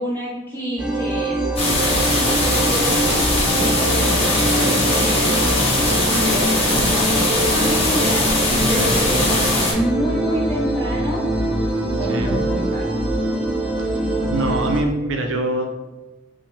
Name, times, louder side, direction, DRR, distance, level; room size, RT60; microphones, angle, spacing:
voice 1, 0.0-1.5 2.5-3.3 3.6-5.4 6.1-8.3 8.7-11.2 12.0-12.9, equal, 10° left, -7 dB, 1.3 m, -28 dB
sound 1, 0.8-14.8, right 1 dB, 5° right, 0.6 m, -23 dB
sound 2, 1.6-9.7, left 1 dB, 30° left, 1.1 m, -20 dB
voice 2, 14.3-15.7, right 2 dB, 75° right, 3 dB, 0.7 m, -24 dB
6.1 x 2.3 x 3.3 m, 1.1 s
head